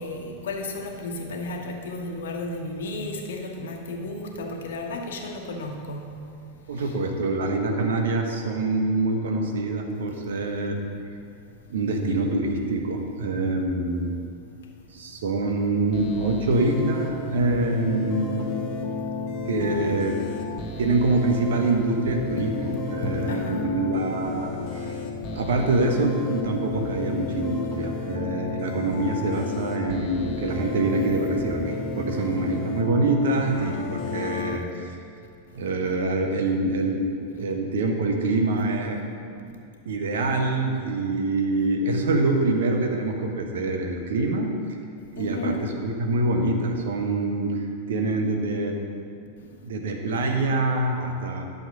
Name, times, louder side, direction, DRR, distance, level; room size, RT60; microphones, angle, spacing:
voice 1, 0.0-6.1 6.8-6.9 19.8-19.9 22.4-22.5 23.0-23.6 45.2-45.7, left 1 dB, 60° left, 2 dB, 1.2 m, -33 dB
voice 2, 6.7-10.8 11.7-14.1 14.9-18.5 19.5-20.2 20.8-25.0 25.3-35.0 35.5-37.0 37.3-39.0 39.3-44.8 45.1-48.8 49.4-51.4, right 2 dB, 60° right, 3 dB, 1.1 m, -25 dB
sound 1, 15.9-34.6, left 3 dB, 40° left, 1.3 m, -32 dB
11.5 x 6.9 x 4.9 m, 2.5 s
figure-of-eight pair, 90°, 0 cm